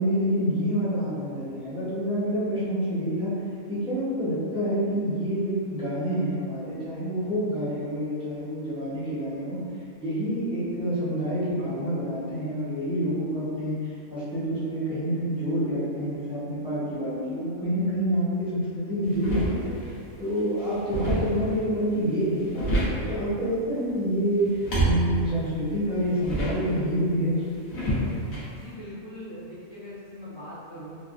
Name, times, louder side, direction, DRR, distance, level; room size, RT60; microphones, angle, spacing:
voice 1, 0.0-3.4 3.7-9.6 10.0-19.7 20.2-27.4, equal, 5° right, -13 dB, 0.6 m, -27 dB
sound 1, 19.0-20.0 20.4-21.6 22.2-23.2 24.4-26.9 27.7-28.4, right 1 dB, 70° left, 1.2 m, -28 dB
voice 2, 28.5-31.0, equal, 35° left, -13 dB, 0.4 m, -41 dB
3.2 x 2.2 x 2.4 m, 2.4 s
omnidirectional pair, 1.5 m